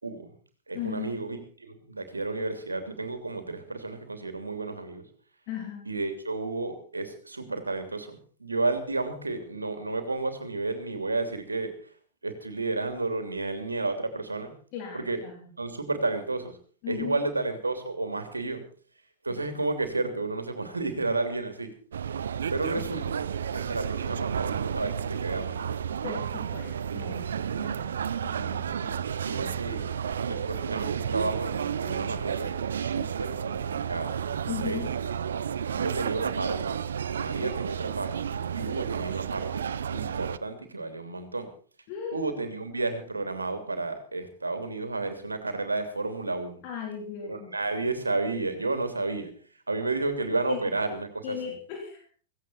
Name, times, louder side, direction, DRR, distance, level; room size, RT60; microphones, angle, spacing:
voice 1, 0.0-0.3 0.7-5.0 5.9-11.7 12.2-14.5 14.9-15.2 15.6-16.6 16.9-18.6 19.2-21.7 22.5-25.6 28.8-29.9 30.2-34.2 34.5-34.9 35.7-36.8 37.2-38.1 38.5-39.6 39.9-41.5 42.1-46.6 47.3-49.3 49.7-51.4, right 3 dB, 85° right, 7 dB, 3.1 m, -32 dB
voice 2, 0.7-1.2 5.5-5.9 14.7-15.5 16.8-17.3 26.0-28.8 34.5-34.9 41.9-42.4 46.6-47.5 50.5-50.6 51.2-52.0, left 8 dB, 45° left, 1 dB, 3.9 m, -37 dB
sound 1, 21.9-40.4, right 8 dB, 70° right, 0.7 m, -31 dB
17.0 x 16.5 x 4.4 m, 0.41 s
figure-of-eight pair, 100°, 0 cm